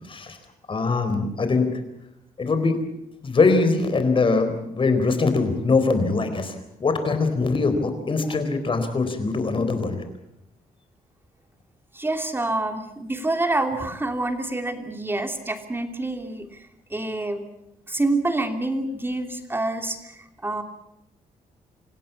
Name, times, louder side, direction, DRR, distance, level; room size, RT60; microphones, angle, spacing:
voice 1, 0.7-1.8 2.4-2.8 3.2-10.0, left 3 dB, 35° left, 8 dB, 4.2 m, -22 dB
voice 2, 11.9-16.5 16.9-17.4 17.9-20.6, right 2 dB, 15° right, 6 dB, 3.0 m, -27 dB
27.5 x 16.5 x 8.5 m, 0.83 s
cardioid pair, 120°, 15 cm